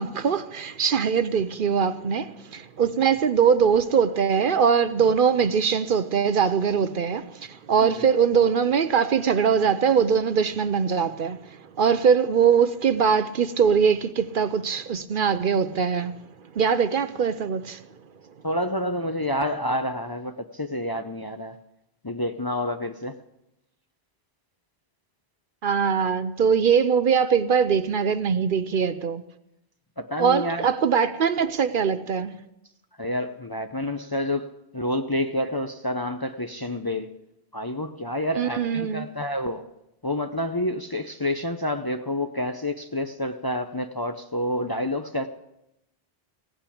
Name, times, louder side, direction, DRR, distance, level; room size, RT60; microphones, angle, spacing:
voice 1, 0.0-11.4 11.8-16.1 16.5-17.8 25.6-29.2 30.2-32.4 38.4-39.1, right 6 dB, 60° right, 0.8 m, -22 dB
voice 2, 18.4-21.6 22.0-23.1 30.0-30.7 33.0-37.1 37.5-39.6 40.0-45.3, left 1 dB, 25° left, 0.6 m, -28 dB
16.5 x 8.8 x 8.5 m
omnidirectional pair, 1.1 m